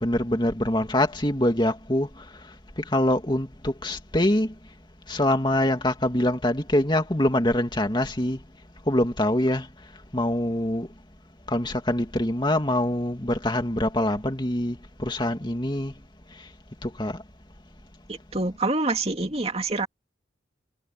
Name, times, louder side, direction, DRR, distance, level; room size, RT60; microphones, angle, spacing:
voice 1, 0.0-4.5 5.1-8.4 8.9-9.7 10.1-10.9 11.5-15.9 16.3-16.5 16.8-17.2, left 1 dB, 25° left, 2.5 m, -24 dB
voice 2, 18.1-19.9, right 2 dB, 30° right, 2.5 m, -26 dB
head